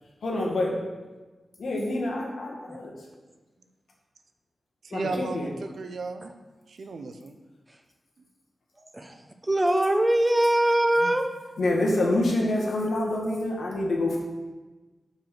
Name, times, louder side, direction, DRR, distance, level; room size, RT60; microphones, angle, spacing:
voice 1, 0.2-0.7 1.6-2.9 4.9-5.5 11.6-14.2, left 1 dB, 80° left, -2 dB, 1.5 m, -26 dB
voice 2, 4.8-6.3 6.8-7.4 11.0-11.1, right 3 dB, 75° right, 7 dB, 0.5 m, -34 dB
voice 3, 9.4-11.2, right 1 dB, 20° right, 6 dB, 0.5 m, -22 dB
5.3 x 4.4 x 5.7 m, 1.2 s
wide cardioid pair, 115°, 0 cm